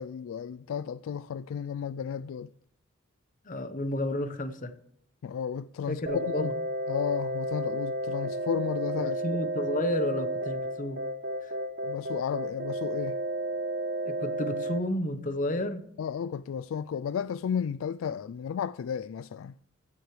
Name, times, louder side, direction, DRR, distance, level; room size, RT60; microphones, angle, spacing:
voice 1, 0.0-2.5 5.2-6.5 6.9-9.4 11.8-13.2 16.0-19.6, left 7 dB, 70° left, 0.3 m, -33 dB
voice 2, 3.4-4.7 5.9-6.5 9.0-11.0 11.4-11.5 14.0-15.8, left 1 dB, 40° left, 0.9 m, -31 dB
sound 1, 6.1-14.8, right 1 dB, 50° right, 0.9 m, -32 dB
15.5 x 7.8 x 3.2 m
head